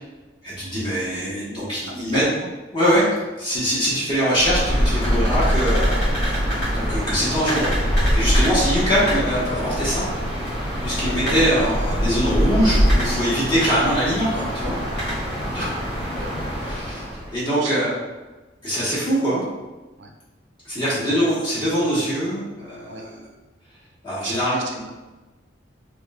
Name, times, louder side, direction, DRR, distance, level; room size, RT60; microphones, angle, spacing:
voice 1, 0.4-2.2 2.7-3.1 3.4-6.0 6.7-7.8 8.1-10.0 10.8-14.7 15.5-15.7 16.6-17.0 17.3-17.9 18.6-19.4 20.6-23.1 24.0-24.6, equal, 25° left, -9 dB, 1.4 m, -22 dB
voice 2, 1.8-2.5 5.7-5.8 11.0-11.4 15.9-16.3 17.3-17.8 20.0-20.1 20.8-21.3 22.9-23.0 24.2-24.9, right 3 dB, 70° right, 2 dB, 0.4 m, -36 dB
sound 1, 4.4-17.3, equal, 65° left, 1.4 m, -23 dB
3.4 x 3.2 x 2.4 m, 1.1 s
head